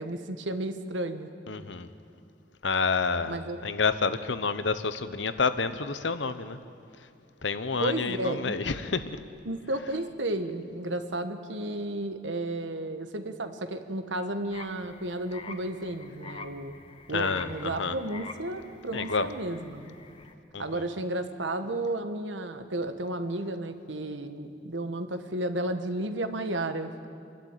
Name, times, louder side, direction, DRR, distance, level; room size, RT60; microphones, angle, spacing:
voice 1, 0.0-1.3 3.3-3.6 7.8-8.6 9.4-16.7 17.1-19.9 20.6-27.1, right 1 dB, 85° right, 9 dB, 1.4 m, -33 dB
voice 2, 1.5-1.9 2.6-6.6 7.4-9.2 17.1-18.0 18.9-19.3 20.5-20.9, left 4 dB, 80° left, 12 dB, 1.0 m, -29 dB
sound 1, 14.5-20.3, left 3 dB, 30° left, 1.1 m, -46 dB
27.5 x 12.0 x 9.1 m, 2.5 s
head